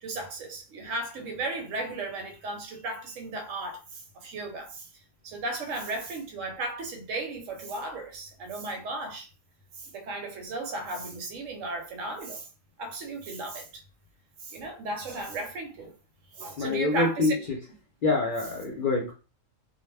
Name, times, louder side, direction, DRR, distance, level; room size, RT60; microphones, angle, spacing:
voice 1, 0.0-4.9 5.2-9.3 9.8-12.5 12.8-13.8 14.4-15.9 16.4-17.3, right 2 dB, 75° right, 1.0 m, -35 dB
voice 2, 16.6-17.4 18.0-19.1, left 3 dB, 55° left, 0.6 m, -25 dB
2.3 x 2.1 x 3.2 m
omnidirectional pair, 1.3 m